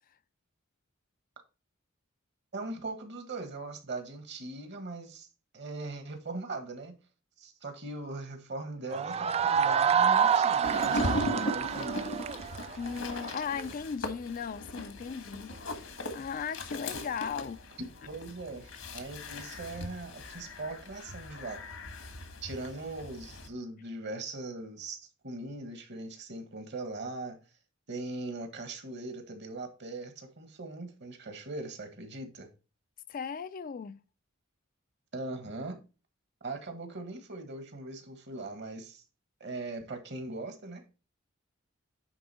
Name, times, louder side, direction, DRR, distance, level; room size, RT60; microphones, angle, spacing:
voice 1, 2.5-5.3 5.5-7.0 7.4-12.1 17.8-21.6 22.4-27.4 27.9-32.5 35.1-35.8 36.4-39.0 39.4-40.9, right 2 dB, 60° right, 1.6 m, -40 dB
sound 1, 8.9-13.6, right 7 dB, 30° right, 0.3 m, -27 dB
sound 2, 10.6-23.5, left 1 dB, 80° left, 1.5 m, -38 dB
voice 2, 12.7-17.8 33.1-34.0, left 6 dB, 45° left, 0.4 m, -37 dB
9.8 x 3.7 x 4.3 m
head